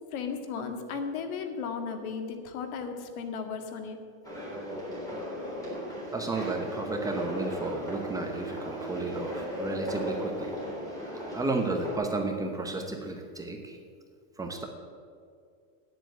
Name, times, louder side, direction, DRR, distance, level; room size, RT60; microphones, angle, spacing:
voice 1, 0.1-4.0, left 5 dB, 80° left, 6 dB, 1.9 m, -35 dB
sound 1, 4.2-11.9, equal, 10° left, 3.5 m, -37 dB
voice 2, 6.1-10.5 11.3-13.8 14.4-14.7, right 2 dB, 10° right, 2 dB, 0.8 m, -32 dB
10.0 x 7.7 x 9.1 m, 2.2 s
supercardioid pair, 160°, 42 cm